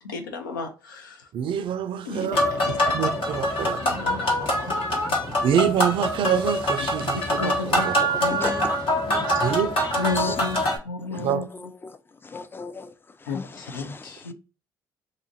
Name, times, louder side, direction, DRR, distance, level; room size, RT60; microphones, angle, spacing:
voice 1, 0.0-1.3 2.0-3.1 3.6-4.8 7.4-7.9 8.2-8.7 9.1-9.4 9.9-11.5 13.3-14.3, left 3 dB, 90° left, 0.5 m, -33 dB
voice 2, 1.3-2.5 2.9-3.8 5.4-7.9 9.4-9.7 11.1-11.4, right 9 dB, 55° right, 0.4 m, -26 dB
sound 1, 2.3-10.8, equal, 60° left, 1.1 m, -24 dB
voice 3, 8.0-8.7 10.1-10.4 11.0-14.3, left 4 dB, 20° left, 0.4 m, -38 dB
2.6 x 2.4 x 2.6 m
hypercardioid pair, 50°, 10 cm